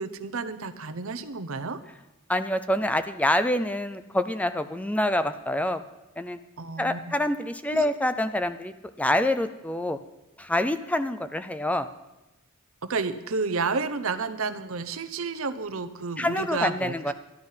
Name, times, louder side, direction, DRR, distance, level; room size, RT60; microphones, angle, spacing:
voice 1, 0.0-1.8 6.6-7.1 7.7-7.9 12.9-17.1, right 4 dB, 70° right, 10 dB, 0.8 m, -31 dB
voice 2, 2.3-5.8 6.2-6.4 6.8-10.0 10.4-11.9 16.2-17.1, left 1 dB, 5° left, 11 dB, 0.4 m, -26 dB
12.0 x 11.5 x 5.6 m, 0.99 s
head